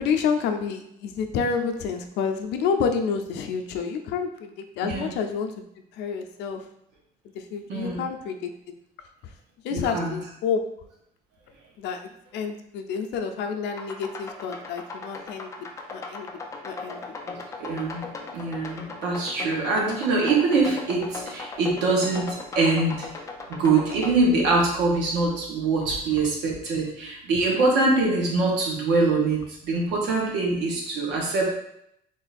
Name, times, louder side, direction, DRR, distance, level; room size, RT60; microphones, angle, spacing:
voice 1, 0.0-5.5 5.9-6.6 7.3-8.5 9.6-10.7 11.8-15.5 15.9-16.3 16.6-17.0, left 6 dB, 80° left, 5 dB, 0.5 m, -29 dB
voice 2, 7.7-8.0 9.7-10.2 17.3-23.1 23.5-31.5, right 3 dB, 90° right, -1 dB, 1.2 m, -24 dB
sound 1, 13.8-24.1, left 3 dB, 15° left, 0.4 m, -37 dB
3.8 x 2.5 x 4.1 m, 0.76 s
cardioid pair, 170°, 18 cm